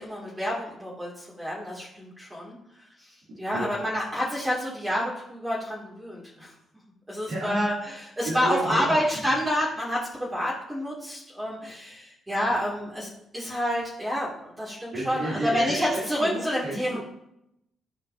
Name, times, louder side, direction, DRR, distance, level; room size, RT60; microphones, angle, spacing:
voice 1, 0.0-2.6 3.4-6.5 7.1-17.0, equal, 10° right, -6 dB, 2.5 m, -28 dB
voice 2, 7.3-7.6 8.2-9.2 14.9-17.0, right 2 dB, 65° right, -8 dB, 2.8 m, -31 dB
13.0 x 4.5 x 2.8 m, 0.80 s
supercardioid pair, 55°, 0 cm